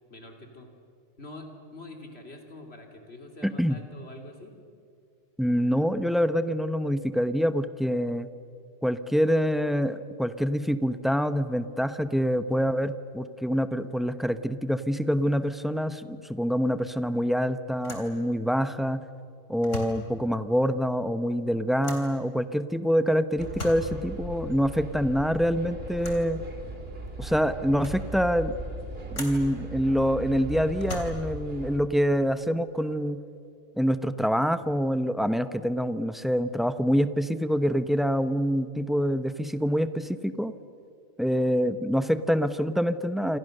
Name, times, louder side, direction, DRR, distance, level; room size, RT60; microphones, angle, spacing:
voice 1, 0.1-0.7 1.2-4.5, left 2 dB, 50° left, 3 dB, 3.5 m, -45 dB
voice 2, 3.4-3.8 5.4-8.3 8.8-19.0 19.5-26.4 27.2-28.5 29.1-33.2 33.8-40.5 41.2-43.4, equal, ahead, 11 dB, 0.7 m, -26 dB
sound 1, 16.5-16.8 17.1-17.2 17.8-18.2 19.5-20.1 21.8-22.2 23.4-23.9 26.0-26.3 27.1-27.2 27.5-28.1 29.1-29.5 30.7-31.4, left 2 dB, 65° left, 3.9 m, -39 dB
sound 2, 23.4-31.8, right 1 dB, 45° right, 2.7 m, -38 dB
28.0 x 26.5 x 6.7 m, 2.5 s
omnidirectional pair, 1.4 m